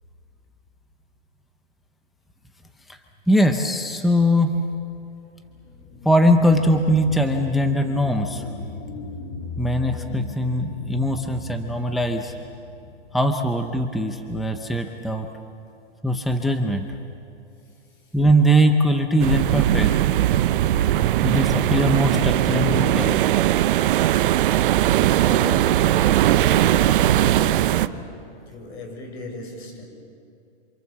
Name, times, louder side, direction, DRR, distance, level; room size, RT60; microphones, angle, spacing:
voice 1, 3.3-4.5 6.0-8.4 9.6-12.3 13.1-15.3 16.0-16.9 18.1-19.9 21.2-23.2, equal, ahead, 6 dB, 0.6 m, -21 dB
sound 1, 5.5-14.6 15.0-15.1, left 2 dB, 55° left, 7.1 m, -37 dB
sound 2, 19.2-27.9, right 13 dB, 50° right, 0.8 m, -19 dB
voice 2, 25.1-29.9, left 2 dB, 70° left, 4 dB, 7.1 m, -36 dB
28.0 x 26.0 x 7.4 m, 2.6 s
hypercardioid pair, 155°, 34 cm